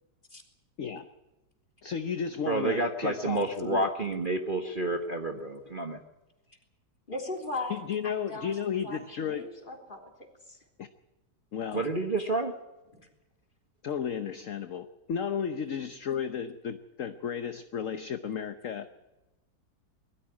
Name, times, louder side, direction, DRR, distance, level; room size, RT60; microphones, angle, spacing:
voice 1, 0.8-1.1 1.8-3.9 7.7-9.5 10.8-10.9 11.5-11.9 13.8-18.9, left 7 dB, 55° left, 10 dB, 1.2 m, -33 dB
voice 2, 2.5-6.0 11.7-12.5, right 2 dB, 30° right, 4 dB, 1.3 m, -29 dB
voice 3, 7.1-8.6 8.8-10.1 10.5-10.6 13.0-13.1, left 2 dB, 30° left, 2 dB, 3.7 m, -38 dB
21.0 x 14.5 x 9.7 m, 1.1 s
omnidirectional pair, 1.9 m